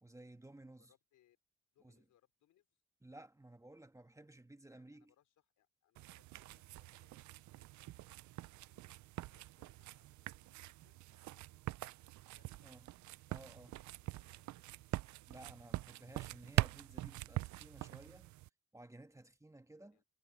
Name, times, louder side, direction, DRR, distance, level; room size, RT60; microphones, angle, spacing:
voice 1, 0.0-0.9 1.8-2.0 3.0-5.1 12.6-12.8 13.3-13.7 15.3-18.3 18.7-20.0, right 1 dB, 10° right, 1.6 m, -56 dB
voice 2, 0.8-1.4 1.7-2.8 4.7-8.9 9.3-11.7 12.2-12.8 13.6-14.9 19.8-20.0, left 12 dB, 80° left, 5.2 m, -77 dB
sound 1, 6.0-18.5, right 17 dB, 70° right, 0.5 m, -43 dB
cardioid pair, 90°, 30 cm